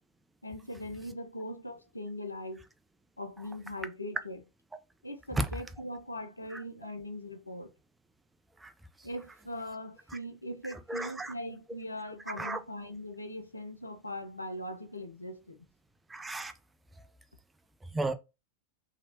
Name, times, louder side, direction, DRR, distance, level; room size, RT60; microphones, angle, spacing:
voice 1, 0.4-2.7 3.2-4.4 5.0-7.7 9.0-15.7, left 1 dB, 85° left, 0.4 m, -40 dB
voice 2, 10.9-11.3 12.4-12.6 16.1-16.5 17.9-18.1, right 2 dB, 10° right, 0.4 m, -32 dB
2.8 x 2.8 x 2.6 m
figure-of-eight pair, 90°, 0 cm